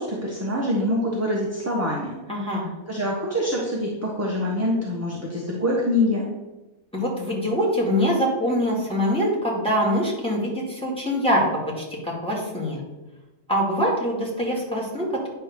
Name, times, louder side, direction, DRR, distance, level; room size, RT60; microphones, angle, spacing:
voice 1, 0.0-2.1 2.4-2.5 2.9-6.3, left 1 dB, 10° right, -4 dB, 0.9 m, -25 dB
voice 2, 2.3-2.7 6.9-12.8 13.5-15.3, equal, 5° left, -3 dB, 2.2 m, -24 dB
9.5 x 3.4 x 6.6 m, 1.1 s
omnidirectional pair, 1.5 m